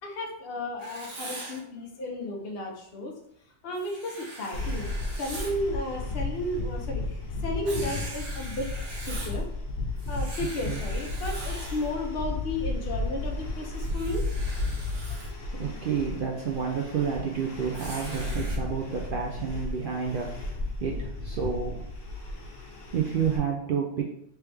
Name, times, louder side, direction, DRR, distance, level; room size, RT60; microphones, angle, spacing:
voice 1, 0.0-3.1 3.6-4.9 5.2-8.7 9.1-9.5 10.1-14.2 15.1-15.2, left 1 dB, 55° left, 0 dB, 1.0 m, -33 dB
Writing, 0.8-1.6 3.7-5.6 7.6-9.4 10.0-11.9 13.7-15.3 17.7-18.6, right 2 dB, 80° right, 1.3 m, -42 dB
sound 1, 4.5-23.4, left 2 dB, 85° left, 1.2 m, -34 dB
voice 2, 15.6-20.3 20.8-21.8 22.1-22.3 22.9-24.1, right 6 dB, 60° right, 0 dB, 0.6 m, -30 dB
3.4 x 3.0 x 3.3 m, 0.71 s
omnidirectional pair, 1.2 m